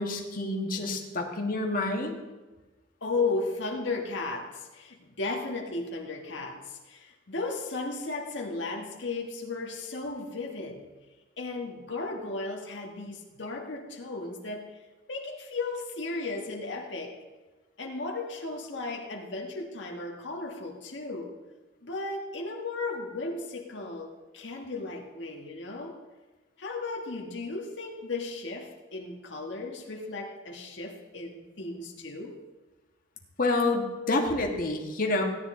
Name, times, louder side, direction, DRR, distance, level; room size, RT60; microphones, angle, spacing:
voice 1, 0.0-2.2 33.4-35.2, left 2 dB, 50° left, 1 dB, 1.6 m, -28 dB
voice 2, 3.0-10.9 11.4-14.8 15.1-17.2 17.8-21.4 21.8-26.0 26.6-32.4, left 3 dB, 75° left, 1 dB, 1.5 m, -35 dB
16.5 x 10.5 x 3.8 m, 1.2 s
head